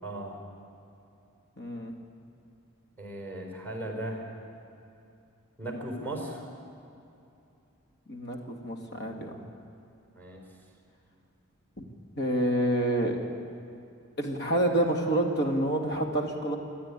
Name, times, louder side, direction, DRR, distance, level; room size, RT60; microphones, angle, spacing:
voice 1, 0.0-0.4 3.0-4.3 5.6-6.4 10.1-10.4, right 1 dB, 10° left, 1 dB, 4.1 m, -37 dB
voice 2, 1.6-1.9 8.1-8.4 8.6-9.4 12.2-13.3 14.2-16.6, right 1 dB, 50° left, 2 dB, 2.3 m, -27 dB
27.0 x 10.0 x 9.9 m, 2.7 s
head